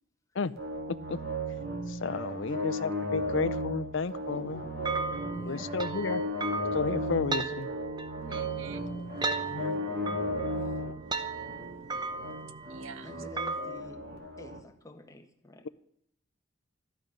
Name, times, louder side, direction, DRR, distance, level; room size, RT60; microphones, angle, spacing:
sound 1, 0.6-14.6, equal, 50° right, 2.6 m, -35 dB
voice 1, 1.9-4.6 5.4-6.2 6.7-7.7 9.5-9.8, left 4 dB, 65° left, 13 dB, 0.6 m, -32 dB
sound 2, 4.3-10.9, left 2 dB, 40° left, 1.4 m, -49 dB
sound 3, 4.8-13.8, right 3 dB, 20° right, 0.9 m, -37 dB
voice 2, 5.2-5.7 13.0-14.0 14.4-15.7, left 2 dB, 15° left, 5 dB, 1.4 m, -49 dB
voice 3, 8.3-9.8 10.6-13.1, right 4 dB, 70° right, 14 dB, 0.9 m, -50 dB
13.0 x 12.0 x 6.5 m, 0.73 s
head